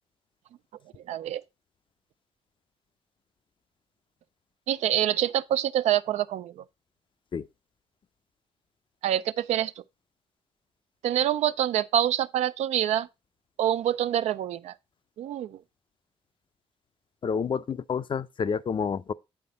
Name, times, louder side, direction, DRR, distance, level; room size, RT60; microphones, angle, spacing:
voice 1, 1.0-1.4 4.7-6.6 9.0-9.7 11.0-13.1 13.6-14.7 15.2-15.6, right 11 dB, 90° right, 0.4 m, -26 dB
voice 2, 17.2-19.1, left 6 dB, 50° left, 0.5 m, -29 dB
7.6 x 5.7 x 4.0 m
cardioid pair, 70°, 11 cm